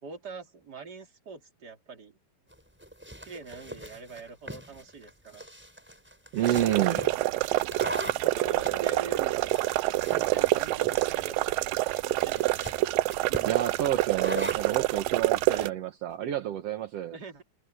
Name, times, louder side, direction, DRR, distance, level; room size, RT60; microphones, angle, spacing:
voice 1, 0.0-2.2 3.2-5.4 6.8-7.7 8.2-9.5 10.1-11.7 12.0-12.8 13.3-13.5 15.5-15.8 17.1-17.4, right 4 dB, 30° right, 3.0 m, -43 dB
sound 1, 2.5-14.8, equal, 5° right, 6.6 m, -41 dB
voice 2, 6.3-7.0 13.4-17.2, right 12 dB, 65° right, 1.7 m, -29 dB
sound 2, 6.4-15.7, right 19 dB, 80° right, 2.2 m, -27 dB
omnidirectional pair, 4.1 m